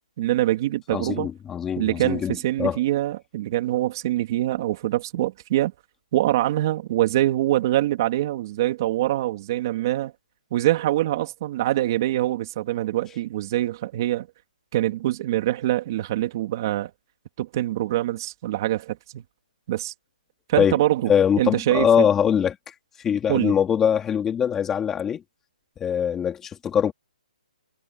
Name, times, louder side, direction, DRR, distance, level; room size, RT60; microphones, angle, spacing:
voice 1, 0.2-1.3 1.8-5.7 6.1-10.1 10.5-14.3 14.7-16.9 17.4-19.2 19.7-19.9 20.5-21.1 21.4-22.1 23.3-23.5, right 14 dB, 25° right, 3.0 m, -24 dB
voice 2, 0.9-2.8 20.6-20.8 21.1-25.2 25.8-26.9, left 8 dB, 10° left, 2.9 m, -23 dB
hypercardioid pair, 175°, 5 cm